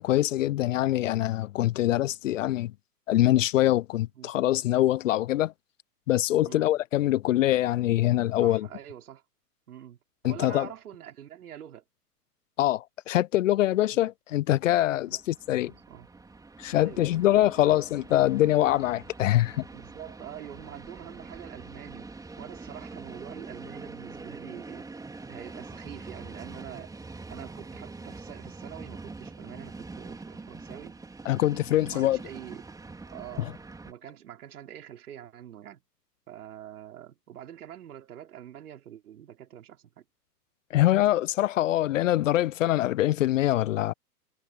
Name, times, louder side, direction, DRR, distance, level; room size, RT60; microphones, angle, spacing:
voice 1, 0.0-2.7 3.1-5.5 6.1-8.7 10.2-10.7 12.6-15.7 16.6-19.6 31.3-32.2 40.7-43.9, left 14 dB, 55° left, 0.6 m, -24 dB
voice 2, 8.4-9.2 9.7-10.0 10.2-11.8 13.9-14.1 15.1-15.2 15.5-16.1 16.8-17.7 18.4-18.5 19.7-24.9 25.3-26.9 27.3-31.0 31.8-32.6 33.1-33.5 33.8-35.8 36.3-40.0, right 10 dB, 65° right, 5.0 m, -45 dB
Train, 15.0-33.9, right 3 dB, 5° right, 4.2 m, -44 dB
hypercardioid pair, 115°, 48 cm